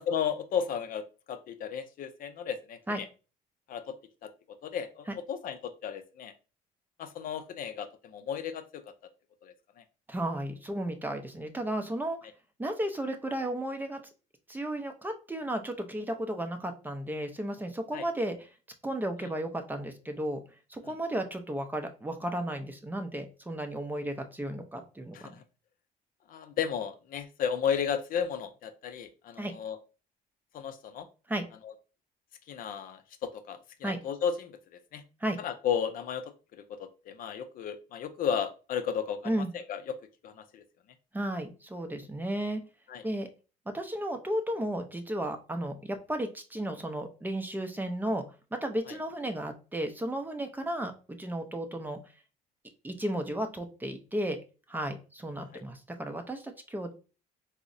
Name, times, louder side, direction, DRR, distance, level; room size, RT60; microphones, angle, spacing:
voice 1, 0.1-2.8 3.7-3.9 4.2-4.3 4.6-6.3 7.0-8.6 9.4-9.5 17.9-18.0 25.1-25.4 26.3-29.8 30.5-31.1 31.6-31.7 32.5-34.6 34.9-35.0 35.4-36.2 36.7-40.0 40.2-40.6 42.9-43.0 48.9-49.0, left 7 dB, 55° left, 10 dB, 0.4 m, -34 dB
voice 2, 10.1-12.2 12.6-14.0 14.5-18.5 18.8-20.4 20.7-25.3 29.4-29.5 31.3-31.4 33.8-34.0 35.2-35.4 39.2-39.5 41.1-42.6 43.0-43.3 43.7-48.2 48.5-52.0 52.8-54.4 54.7-56.9, right 1 dB, 10° right, 5 dB, 0.5 m, -34 dB
4.6 x 2.0 x 2.5 m, 0.33 s
cardioid pair, 110°, 17 cm